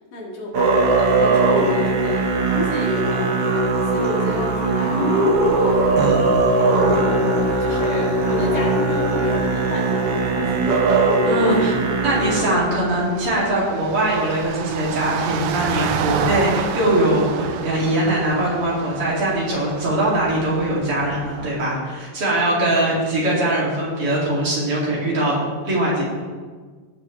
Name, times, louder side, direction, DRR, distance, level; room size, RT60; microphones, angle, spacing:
voice 1, 0.1-0.6 1.0-3.3 3.9-5.0 5.6-6.0 6.9-7.3 7.6-10.9 11.4-11.6, left 1 dB, 70° left, -2 dB, 3.4 m, -31 dB
Musical instrument, 0.5-12.4, right 2 dB, 60° right, 1.6 m, -19 dB
sound 1, 5.2-21.5, right 7 dB, 80° right, 1.8 m, -32 dB
voice 2, 11.2-11.7 12.0-25.4 25.6-26.0, right 1 dB, 45° right, -6 dB, 3.1 m, -21 dB
18.0 x 6.4 x 3.2 m, 1.5 s
omnidirectional pair, 3.9 m